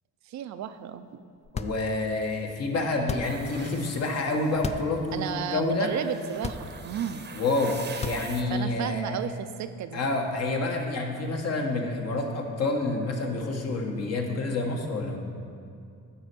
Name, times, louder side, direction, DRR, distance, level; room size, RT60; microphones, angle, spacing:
voice 1, 0.3-1.1 5.1-7.2 8.5-10.0, right 9 dB, 65° right, 10 dB, 0.5 m, -33 dB
sound 1, 1.4-2.1 3.0-3.5 4.5-5.0 5.4-5.5 6.3-7.0 7.9-8.6, left 5 dB, 25° left, 0.4 m, -35 dB
voice 2, 1.5-5.9 7.3-9.2 9.9-15.2, left 2 dB, 55° left, 2 dB, 1.3 m, -28 dB
sound 2, 3.2-4.6 5.2-8.4, right 5 dB, 35° right, 0.8 m, -44 dB
9.8 x 4.3 x 6.7 m, 2.4 s
cardioid pair, 90°, 30 cm